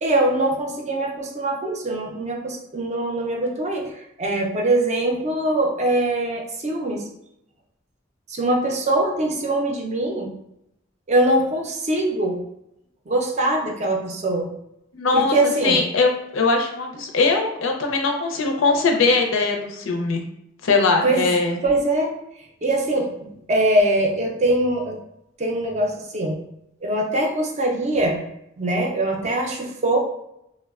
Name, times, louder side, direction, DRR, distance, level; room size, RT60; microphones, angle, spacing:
voice 1, 0.0-3.9 4.2-7.0 8.3-10.3 11.1-12.4 13.1-14.5 15.1-15.8 21.0-21.3 21.6-22.1 22.6-23.1 23.5-25.0 25.4-26.4 26.8-28.2 28.6-30.0, right 1 dB, 35° right, 1 dB, 0.4 m, -22 dB
voice 2, 14.9-20.2 20.6-21.6, left 3 dB, 85° left, 3 dB, 0.5 m, -21 dB
3.0 x 2.1 x 2.3 m, 0.82 s
head